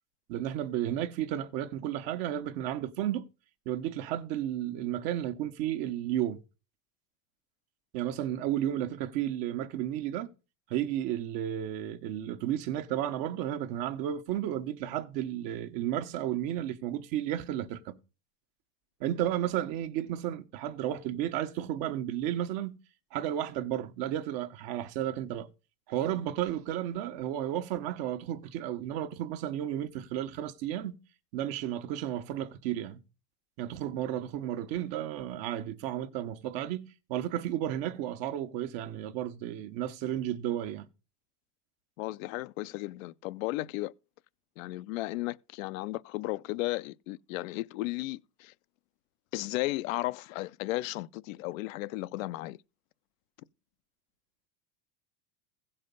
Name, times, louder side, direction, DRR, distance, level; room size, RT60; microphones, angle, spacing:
voice 1, 0.3-3.3 3.7-6.4 7.9-10.3 10.7-17.9 19.0-22.8 23.1-25.5 25.9-31.0 31.3-33.0 33.6-40.9, right 11 dB, 65° right, 1.2 m, -33 dB
voice 2, 42.0-43.9 44.6-48.5 49.3-52.6, left 19 dB, 80° left, 0.6 m, -34 dB
15.5 x 5.6 x 5.3 m
supercardioid pair, 115°, 39 cm